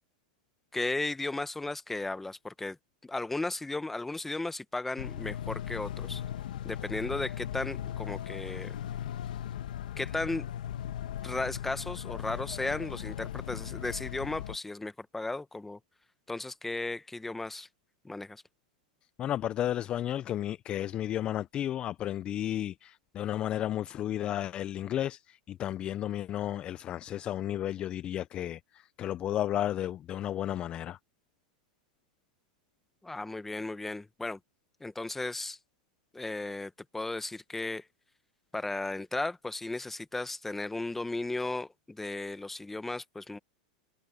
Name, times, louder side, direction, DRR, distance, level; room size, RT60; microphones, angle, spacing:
voice 1, 0.7-2.8 3.0-6.2 6.6-8.8 10.0-10.5 11.2-15.8 16.3-17.7 18.0-18.4 33.0-34.4 34.8-35.6 36.1-37.9 38.5-43.4, left 2 dB, 5° left, 0.9 m, -35 dB
sound 1, 5.0-14.6, left 10 dB, 85° left, 1.3 m, -38 dB
voice 2, 19.2-31.0, left 12 dB, 25° left, 0.3 m, -33 dB
supercardioid pair, 155°, 4 cm